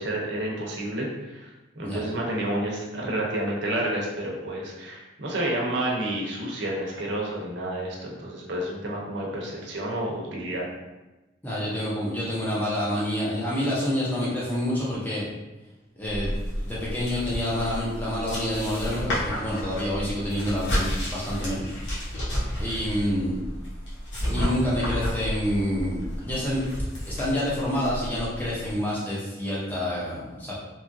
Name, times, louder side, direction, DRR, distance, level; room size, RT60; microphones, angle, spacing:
voice 1, 0.0-1.5 1.8-10.7, right 1 dB, 70° right, -3 dB, 0.7 m, -30 dB
voice 2, 11.4-15.3 16.0-16.4 16.6-22.2 22.6-23.4 24.3-26.6 27.1-30.6, left 1 dB, 10° left, -7 dB, 0.7 m, -28 dB
sound 1, 16.0-28.7, equal, 70° left, 1.0 m, -31 dB
2.8 x 2.4 x 2.6 m, 1.1 s
head